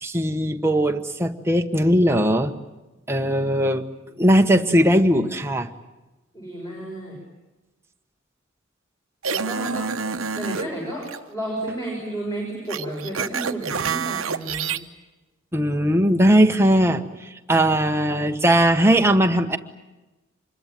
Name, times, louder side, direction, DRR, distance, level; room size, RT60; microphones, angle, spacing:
voice 1, 0.0-2.5 3.1-3.8 4.2-5.7 15.5-17.0 17.5-19.6, equal, 10° right, 5 dB, 1.2 m, -19 dB
voice 2, 6.3-7.2 9.2-9.9 10.3-14.7, right 1 dB, 15° left, -2 dB, 6.4 m, -32 dB
sound 1, 9.2-10.7 11.0-11.2 12.7-14.8, right 6 dB, 85° right, 1.0 m, -27 dB
26.5 x 22.0 x 9.2 m, 1.1 s
head